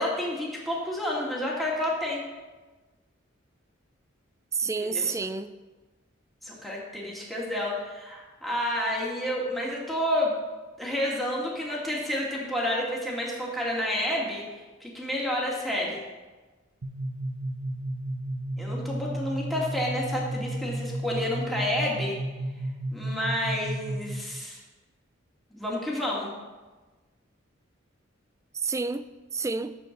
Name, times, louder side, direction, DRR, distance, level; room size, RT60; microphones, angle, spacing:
voice 1, 0.0-2.2 4.8-5.2 6.4-10.3 10.8-14.4 14.8-16.0 18.6-22.2 22.9-24.6 25.5-26.3, left 1 dB, ahead, 1.9 m, -30 dB
voice 2, 4.5-5.5 28.5-29.8, right 4 dB, 15° right, 0.3 m, -30 dB
sound 1, 16.8-24.4, right 1 dB, 90° right, 0.9 m, -33 dB
13.5 x 4.5 x 6.5 m
head